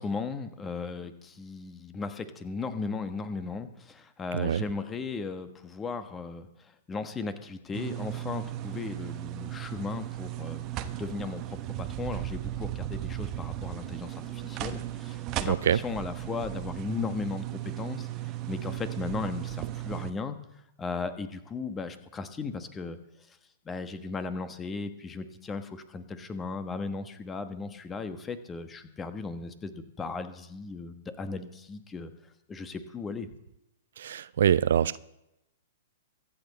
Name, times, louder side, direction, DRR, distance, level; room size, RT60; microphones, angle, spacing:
voice 1, 0.0-6.5 6.9-10.6 11.0-18.1 18.5-20.4 20.8-23.0 23.6-32.1 32.5-33.3, left 4 dB, 15° left, 10 dB, 1.3 m, -36 dB
sound 1, 7.7-20.1, right 14 dB, 30° right, 0.9 m, -36 dB
voice 2, 15.4-15.8 34.0-35.0, right 9 dB, 60° right, 18 dB, 0.4 m, -24 dB
24.0 x 8.6 x 4.1 m, 0.88 s
figure-of-eight pair, 110°, 0 cm